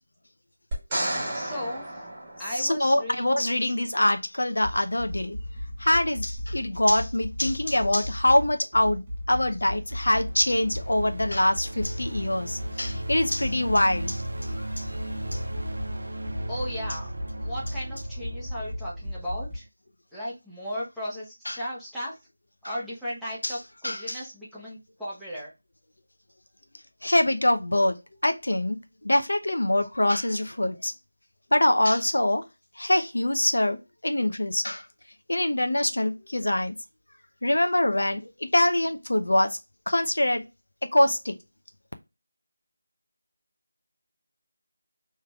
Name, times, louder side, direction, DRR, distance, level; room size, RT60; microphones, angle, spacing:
sound 1, 0.7-3.0 6.4-6.5, right 1 dB, 15° right, 1.9 m, -32 dB
voice 1, 1.3-2.0 2.4-3.7 16.5-17.1 17.4-19.7 20.1-22.1 22.6-25.5, equal, ahead, 1.1 m, -36 dB
voice 2, 2.6-5.4 5.8-15.0 15.3-15.4 21.5-21.6 22.6-22.7 23.4-23.5 23.8-24.2 27.0-28.0 28.2-28.8 29.0-30.9 31.5-32.4 32.8-33.8 34.0-34.9 35.3-36.8 37.4-39.6 39.9-40.4 40.9-41.4, left 1 dB, 75° left, 0.7 m, -24 dB
sound 2, 4.6-19.6, left 1 dB, 30° right, 1.5 m, -36 dB
sound 3, 9.5-19.7, right 1 dB, 65° right, 0.5 m, -37 dB
4.8 x 3.2 x 2.4 m
figure-of-eight pair, 165°, 0 cm